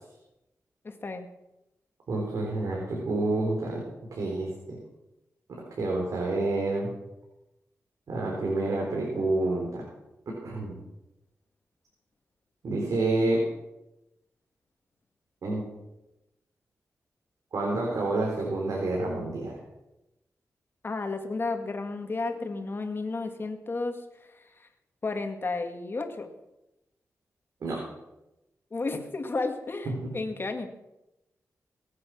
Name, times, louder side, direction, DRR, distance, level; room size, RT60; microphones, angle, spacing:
voice 1, 0.8-1.3 20.8-24.3 24.6-24.7 25.0-26.3 28.7-30.7, left 3 dB, 40° left, 6 dB, 2.1 m, -32 dB
voice 2, 2.1-3.8 4.1-4.8 5.8-6.9 8.1-9.8 10.4-10.8 12.6-13.4 15.4-15.6 17.5-19.6 27.6-27.8 30.0-30.1, right 2 dB, 80° right, -2 dB, 3.9 m, -28 dB
22.0 x 8.3 x 6.3 m, 0.94 s
wide cardioid pair, 95°, 6 cm